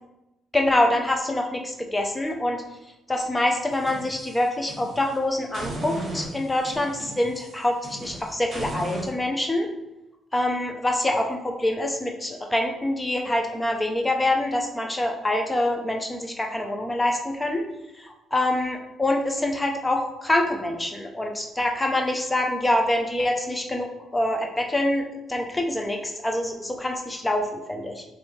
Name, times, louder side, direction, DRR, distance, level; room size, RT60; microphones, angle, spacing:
voice 1, 0.5-2.6 3.1-9.7 10.3-17.7 18.0-23.9 24.1-28.0, left 1 dB, 15° left, 2 dB, 0.5 m, -25 dB
sound 1, 3.7-5.1 5.5-9.1, right 1 dB, 40° right, 1.3 m, -36 dB
4.8 x 2.6 x 3.1 m, 0.95 s
cardioid pair, 90°, 0 cm